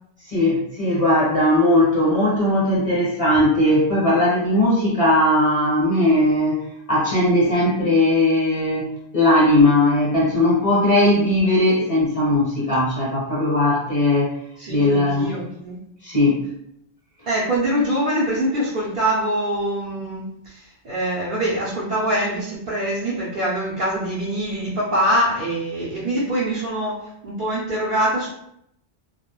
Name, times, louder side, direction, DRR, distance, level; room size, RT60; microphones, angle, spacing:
voice 1, 0.3-6.6 6.9-8.9 9.1-14.4 14.7-15.3 16.0-16.4, left 1 dB, 35° left, -7 dB, 0.9 m, -18 dB
voice 2, 14.6-15.8 17.3-28.3, right 1 dB, 60° right, -8 dB, 0.7 m, -24 dB
2.3 x 2.0 x 2.9 m, 0.76 s
omnidirectional pair, 1.0 m